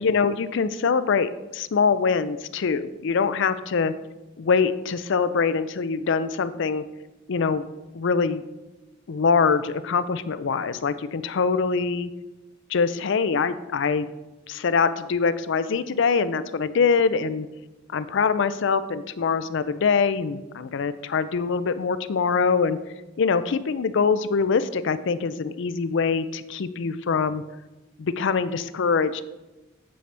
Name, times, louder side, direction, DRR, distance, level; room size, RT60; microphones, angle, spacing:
voice 1, 0.0-3.9 4.4-6.8 7.3-7.7 7.9-8.4 9.1-12.1 12.7-14.1 14.5-17.5 17.9-22.8 23.2-27.4 28.0-29.2, left 5 dB, 65° left, 13 dB, 0.4 m, -23 dB
8.0 x 7.7 x 3.4 m, 1.0 s
head